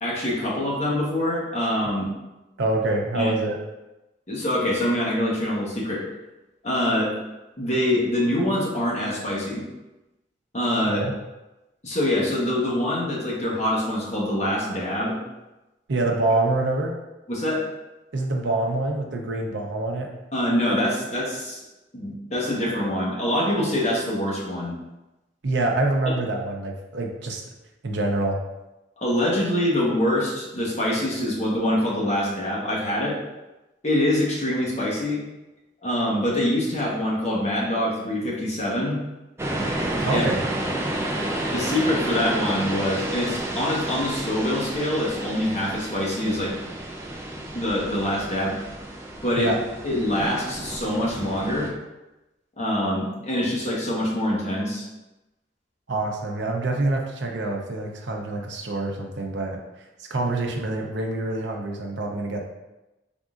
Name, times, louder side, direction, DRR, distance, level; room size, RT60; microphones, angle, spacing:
voice 1, 0.0-2.0 3.1-3.3 4.3-6.0 6.6-7.1 7.6-9.6 10.5-11.1 11.8-15.2 17.3-17.6 20.3-21.6 21.9-24.8 29.0-33.2 33.8-35.2 35.8-39.0 40.1-40.2 40.6-40.7 41.5-46.5 47.5-48.6 49.2-49.5 49.8-51.7 52.6-54.9, left 1 dB, 35° left, -5 dB, 0.9 m, -25 dB
voice 2, 2.6-3.6 10.9-11.1 15.9-16.9 18.1-20.1 25.4-27.4 27.8-28.4 40.0-40.5 49.4-49.6 55.9-59.6 60.1-62.4, right 2 dB, 70° right, 1 dB, 0.6 m, -26 dB
sound 1, 39.4-51.7, right 1 dB, 15° right, 0.4 m, -31 dB
4.0 x 3.5 x 2.4 m, 1.0 s
head